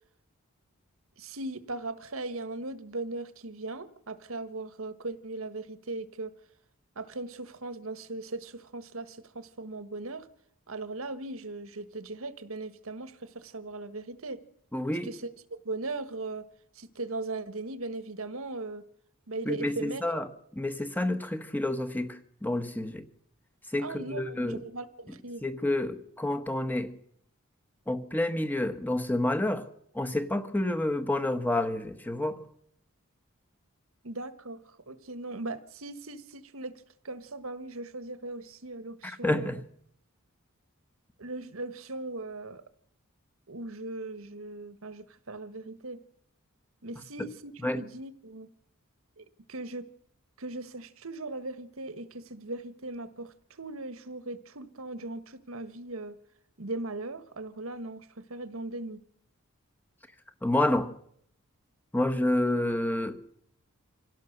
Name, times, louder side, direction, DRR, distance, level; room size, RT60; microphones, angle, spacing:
voice 1, 1.2-6.3 6.9-10.3 10.7-14.4 14.9-15.3 15.6-16.5 16.7-18.8 19.3-20.0 23.8-25.4 34.0-36.7 37.0-39.6 41.2-42.6 43.5-46.0 46.8-48.5 49.2-49.9 50.4-56.2 56.6-59.0, right 2 dB, 80° right, 1.5 m, -38 dB
voice 2, 14.7-15.1 19.4-20.3 20.5-23.0 23.7-24.6 25.4-26.9 27.9-29.7 29.9-32.4 39.0-39.6 47.2-47.3 47.6-47.8 60.4-60.9 61.9-63.2, left 1 dB, 10° left, 1.3 m, -29 dB
25.5 x 17.0 x 6.7 m
head